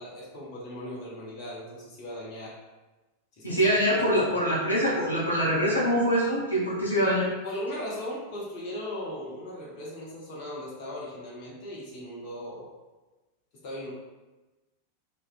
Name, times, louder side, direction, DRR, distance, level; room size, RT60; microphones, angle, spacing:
voice 1, 0.0-2.6 3.4-4.1 7.4-12.7 13.6-13.9, left 1 dB, 45° left, -5 dB, 0.7 m, -38 dB
voice 2, 3.4-7.3, equal, 85° left, -8 dB, 0.7 m, -24 dB
2.4 x 2.1 x 2.4 m, 1.1 s
figure-of-eight pair, 90°, 0 cm